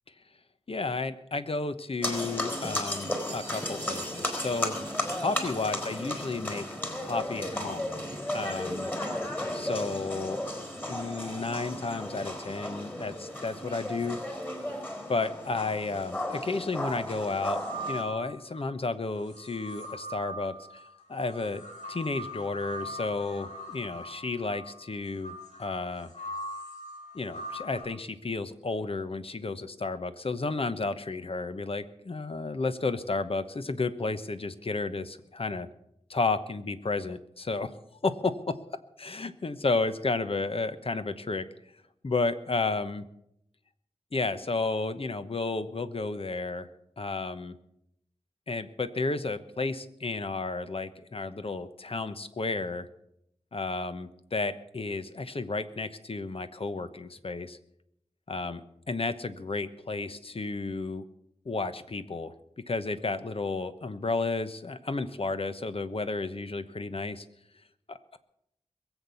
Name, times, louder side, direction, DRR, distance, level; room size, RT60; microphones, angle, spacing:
voice 1, 0.7-4.8 5.1-6.6 7.0-7.9 8.3-8.9 9.5-10.4 10.9-14.2 15.1-17.6 17.9-20.8 21.1-21.6 21.9-26.1 27.1-35.7 36.1-37.7 38.0-38.6 39.0-41.4 42.0-43.0 44.1-46.7 47.0-47.6 48.5-52.9 53.5-57.6 58.3-58.6 58.9-61.0 61.4-62.3 62.7-67.2 67.9-68.2, left 3 dB, 55° left, 11 dB, 1.1 m, -32 dB
sound 1, 2.0-18.0, left 1 dB, 15° left, 3.8 m, -34 dB
sound 2, 17.4-18.7 19.2-27.8, equal, 90° left, 7.2 m, -41 dB
22.0 x 8.2 x 7.0 m, 0.76 s
wide cardioid pair, 75°, 12 cm